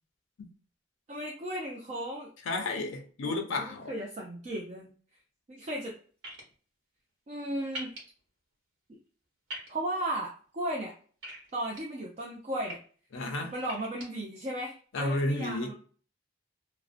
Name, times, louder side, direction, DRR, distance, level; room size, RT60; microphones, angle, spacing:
voice 1, 1.1-2.3 3.2-4.9 5.5-6.0 7.3-7.9 9.7-10.9 11.5-12.8 13.5-15.7, right 1 dB, 35° right, 0.4 m, -35 dB
voice 2, 2.5-3.9 13.1-13.5 14.9-15.7, left 2 dB, 80° left, 0.5 m, -32 dB
sound 1, 6.2-6.4 7.7-8.0 9.5-9.7 11.2-11.8 12.4-12.7 13.6-14.1, equal, 80° right, 1.0 m, -40 dB
2.5 x 2.0 x 2.4 m
head